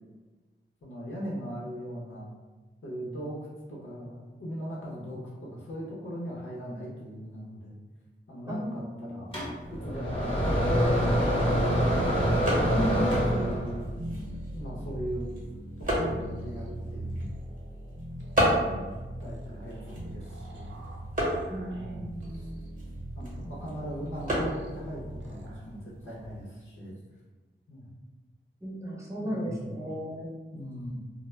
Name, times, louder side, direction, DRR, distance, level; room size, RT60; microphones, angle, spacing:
voice 1, 0.8-2.3 2.8-3.4 3.7-7.8 8.3-9.4 9.7-11.8 12.5-14.0 14.5-15.3 15.8-17.4 18.5-18.9 19.2-20.8 21.7-22.5 23.1-27.0 27.7-27.9 29.2-29.7 30.5-31.0, equal, 65° left, -6 dB, 0.6 m, -39 dB
voice 2, 8.5-9.3 12.7-13.5 21.5-22.7 28.6-30.3, equal, 15° right, -5 dB, 0.8 m, -35 dB
sound 1, 9.3-13.8, equal, 25° left, 0.9 m, -25 dB
sound 2, 10.9-26.5, equal, 40° right, 1.0 m, -35 dB
sound 3, 13.2-25.7, right 1 dB, 60° right, 0.5 m, -40 dB
2.1 x 2.0 x 3.1 m, 1.3 s
cardioid pair, 45°, 21 cm